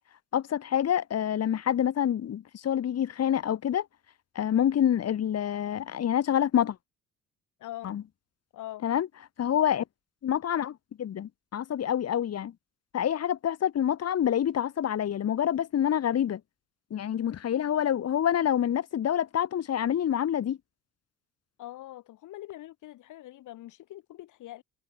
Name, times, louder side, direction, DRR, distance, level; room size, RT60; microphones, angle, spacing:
voice 1, 0.3-3.8 4.3-6.8 7.8-8.0 8.8-9.1 9.4-9.8 10.2-12.5 12.9-16.4 16.9-20.6, left 10 dB, 55° left, 1.5 m, -27 dB
voice 2, 7.6-7.9 8.5-8.8 21.6-24.6, left 15 dB, 80° left, 1.6 m, -43 dB
cardioid pair, 90°, 30 cm